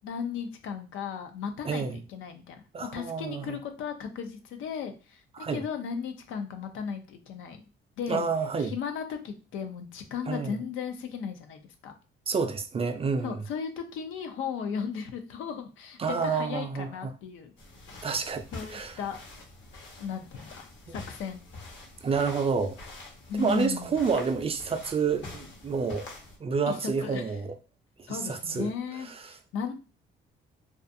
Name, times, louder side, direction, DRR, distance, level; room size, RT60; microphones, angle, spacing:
voice 1, 0.0-7.6 8.0-8.3 8.6-11.9 13.2-17.5 18.5-19.2 20.0-21.4 23.3-23.9 26.7-27.3 28.1-29.7, left 6 dB, 90° left, 0.5 m, -36 dB
voice 2, 1.6-2.0 2.7-3.6 5.3-5.6 8.1-8.7 10.3-10.6 12.3-13.4 16.0-17.1 18.0-18.4 18.7-19.0 20.9-21.0 22.0-22.8 23.3-26.1 26.4-27.5 28.1-28.7 29.0-29.4, right 5 dB, 30° right, 0.4 m, -29 dB
sound 1, 17.6-26.4, left 2 dB, 70° left, 0.9 m, -46 dB
2.4 x 2.3 x 2.6 m
cardioid pair, 90°, 20 cm